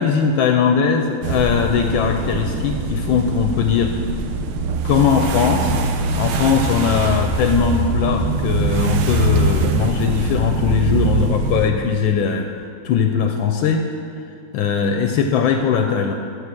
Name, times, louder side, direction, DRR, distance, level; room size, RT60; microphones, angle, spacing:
voice 1, 0.0-4.0 4.8-5.7 6.2-12.5 12.8-13.8 14.5-16.1, left 7 dB, 75° left, 5 dB, 1.3 m, -19 dB
sound 1, 1.2-11.7, right 3 dB, 80° right, 1.6 m, -22 dB
8.2 x 7.1 x 6.4 m, 2.4 s
omnidirectional pair, 2.3 m